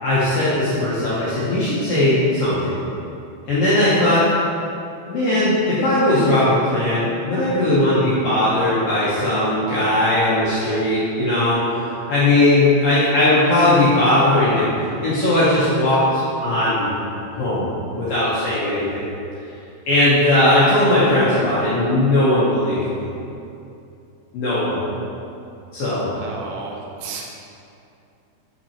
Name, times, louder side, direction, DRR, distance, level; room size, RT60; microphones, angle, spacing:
voice 1, 0.0-2.8 3.5-4.2 5.1-11.6 12.1-14.7 15.0-16.9 17.3-19.1 19.9-23.0 24.3-24.8 25.7-26.1, left 1 dB, 75° left, -10 dB, 2.1 m, -18 dB
voice 2, 26.2-27.2, right 4 dB, 80° right, -2 dB, 2.9 m, -32 dB
6.1 x 5.8 x 2.9 m, 2.7 s
omnidirectional pair, 5.2 m